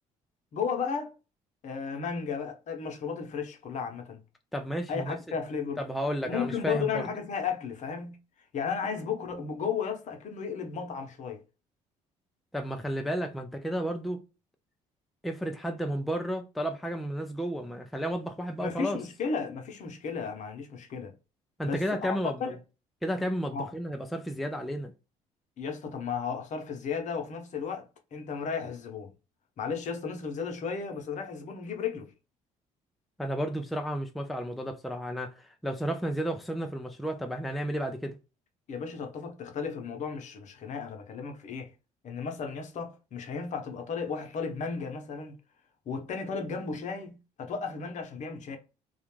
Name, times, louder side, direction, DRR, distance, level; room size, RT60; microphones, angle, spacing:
voice 1, 0.5-1.1 1.6-4.2 4.9-5.8 6.2-8.2 8.5-11.4 18.6-21.1 21.6-22.6 23.5-23.7 25.6-29.1 29.6-32.1 38.7-41.7 42.0-45.3 45.9-48.6, left 6 dB, 55° left, 0.7 m, -34 dB
voice 2, 4.5-5.2 5.8-7.1 12.5-14.2 15.2-19.0 21.6-22.5 23.0-24.9 33.2-38.2, equal, ahead, 0.3 m, -32 dB
2.4 x 2.1 x 3.0 m
supercardioid pair, 85°, 15 cm